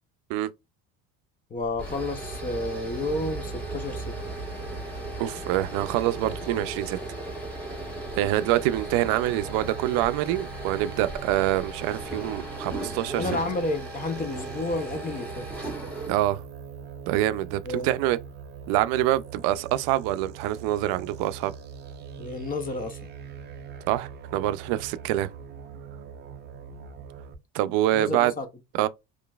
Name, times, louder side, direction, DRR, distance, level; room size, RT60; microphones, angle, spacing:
voice 1, 1.5-4.2 13.1-15.5 17.6-17.9 22.2-23.1 27.9-28.5, left 2 dB, 25° left, 0.7 m, -31 dB
sound 1, 1.6-16.1, right 2 dB, 5° left, 1.3 m, -36 dB
voice 2, 5.2-7.0 8.1-13.2 16.1-16.4 17.1-18.2 18.7-21.5 23.9-25.3 27.5-28.3 28.8-28.9, right 14 dB, 85° right, 0.5 m, -25 dB
sound 2, 8.8-27.3, right 6 dB, 30° right, 0.5 m, -42 dB
3.9 x 3.1 x 2.3 m
cardioid pair, 145°, 34 cm